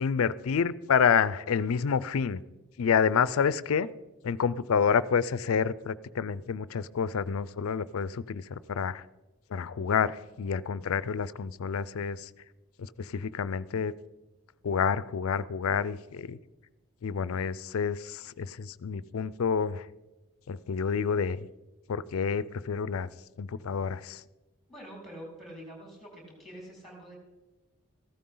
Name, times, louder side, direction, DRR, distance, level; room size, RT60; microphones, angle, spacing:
voice 1, 0.0-2.4 2.8-3.9 4.2-9.0 9.5-12.3 12.8-13.9 14.6-16.4 17.0-19.9 20.5-21.4 21.9-23.1 23.4-24.2, left 6 dB, 70° left, 18 dB, 0.4 m, -28 dB
voice 2, 24.7-27.2, equal, ahead, -2 dB, 4.3 m, -46 dB
14.5 x 12.5 x 3.8 m, 1.1 s
head